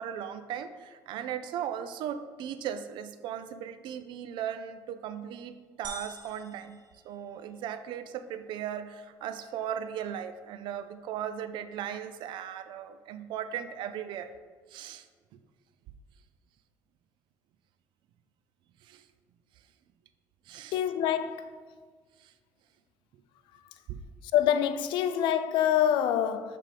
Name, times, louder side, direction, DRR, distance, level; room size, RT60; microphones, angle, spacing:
voice 1, 0.0-14.3 14.7-15.0 18.9-19.0 20.5-20.8 22.2-22.3 23.9-24.0, right 9 dB, 70° right, 0.4 m, -37 dB
sound 1, 5.8-7.8, right 4 dB, 50° right, 0.8 m, -46 dB
voice 2, 20.7-21.6 24.3-26.6, left 10 dB, 75° left, 0.4 m, -26 dB
7.5 x 3.4 x 5.0 m
supercardioid pair, 85°, 8 cm